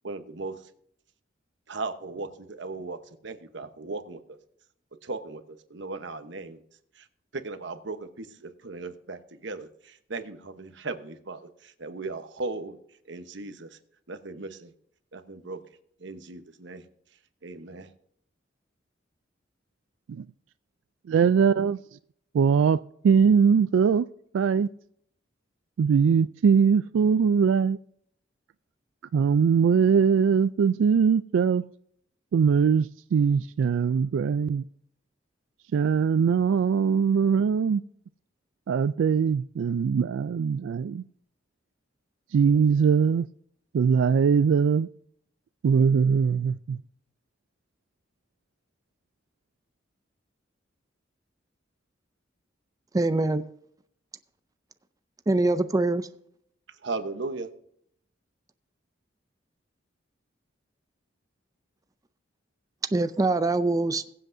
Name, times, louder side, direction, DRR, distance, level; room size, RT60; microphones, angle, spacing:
voice 1, 0.0-0.6 1.7-4.4 5.0-6.6 6.9-7.1 7.3-12.8 13.0-13.8 14.1-14.7 15.1-15.6 16.0-16.8 17.4-17.9 56.7-57.5, right 3 dB, 70° right, 1.0 m, -37 dB
voice 2, 21.1-21.8 22.3-22.8 23.0-24.1 24.3-24.7 25.8-27.8 29.1-31.6 32.3-34.6 35.7-37.8 38.7-41.0 42.3-43.3 43.7-44.9 45.6-46.8, right 6 dB, 85° right, 0.3 m, -21 dB
voice 3, 52.9-53.4 55.3-56.1 62.9-64.0, right 2 dB, 20° right, 0.4 m, -23 dB
21.5 x 7.9 x 2.6 m
head